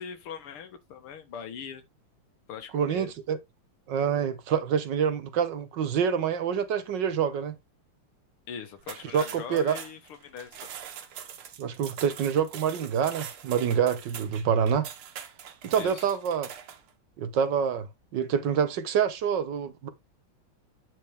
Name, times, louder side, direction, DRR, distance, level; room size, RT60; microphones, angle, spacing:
voice 1, 0.0-1.8 2.5-3.1 8.5-10.8 15.7-16.2, left 7 dB, 90° left, 2.2 m, -41 dB
voice 2, 2.7-3.4 3.9-7.5 9.1-9.8 11.6-14.9 15.6-16.5 17.2-17.9 18.1-19.9, right 7 dB, 65° right, 1.4 m, -26 dB
sound 1, 8.8-16.9, right 8 dB, 90° right, 2.0 m, -43 dB
9.1 x 4.5 x 3.3 m
omnidirectional pair, 2.3 m